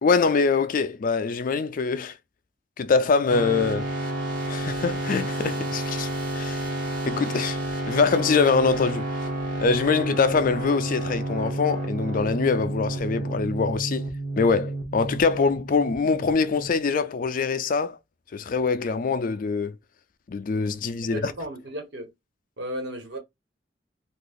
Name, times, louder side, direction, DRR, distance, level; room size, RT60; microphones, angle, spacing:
voice 1, 0.0-2.1 2.8-3.9 4.5-6.1 6.3-6.6 7.1-7.6 7.9-9.0 9.6-14.0 14.4-18.0 18.3-19.8 20.3-21.3, left 4 dB, 50° left, 0.4 m, -24 dB
sound 1, 3.3-16.8, right 1 dB, 50° right, 1.3 m, -30 dB
voice 2, 21.1-22.1 22.6-23.2, equal, 65° right, 1.3 m, -34 dB
2.8 x 2.5 x 3.9 m
head